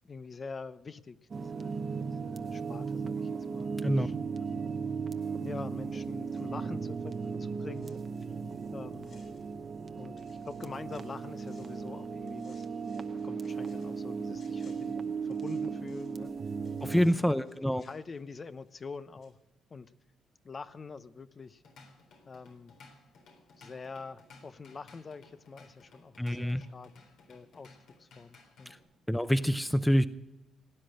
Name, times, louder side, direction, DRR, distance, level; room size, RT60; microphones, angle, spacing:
voice 1, 0.0-1.7 2.1-4.7 5.4-8.0 8.7-9.2 10.0-12.7 13.1-16.3 16.9-17.4 17.8-19.4 19.7-19.9 20.4-21.6 22.3-22.7 23.5-26.9 27.3-28.7, left 4 dB, 35° left, 12 dB, 0.8 m, -45 dB
sound 1, 1.3-17.1, right 5 dB, 40° right, 0.9 m, -36 dB
sound 2, 5.8-9.9 10.2-11.9 12.3-16.3 16.6-19.0 19.2-19.3, left 4 dB, 55° left, 7.5 m, -67 dB
voice 2, 16.8-17.8 26.2-26.6 28.7-28.8 29.1-30.1, equal, 5° left, 12 dB, 0.6 m, -26 dB
Drum kit / Drum, 21.4-28.8, left 3 dB, 80° left, 3.9 m, -57 dB
18.0 x 9.9 x 7.8 m, 1.0 s
cardioid pair, 90°, 0 cm